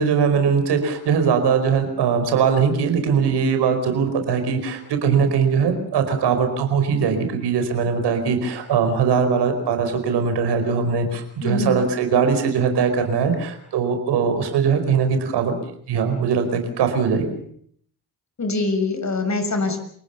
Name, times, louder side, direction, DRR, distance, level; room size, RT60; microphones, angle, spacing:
voice 1, 0.0-15.6 15.9-17.4, right 6 dB, 70° right, 7 dB, 4.9 m, -21 dB
voice 2, 11.4-11.8 18.4-19.8, left 3 dB, 40° left, 8 dB, 6.6 m, -23 dB
28.5 x 18.5 x 7.1 m, 0.62 s
supercardioid pair, 55°, 42 cm